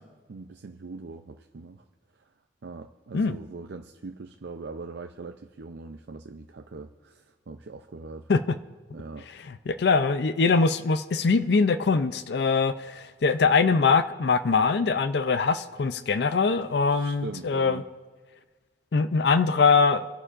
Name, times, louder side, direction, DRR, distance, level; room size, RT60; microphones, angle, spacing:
voice 1, 0.3-1.8 2.2-2.3 2.6-8.3 8.9-9.3 16.9-17.9, right 3 dB, 70° right, 5 dB, 0.5 m, -41 dB
voice 2, 9.7-17.8 18.9-20.1, left 4 dB, 65° left, 12 dB, 0.4 m, -22 dB
26.5 x 11.0 x 2.5 m, 1.4 s
head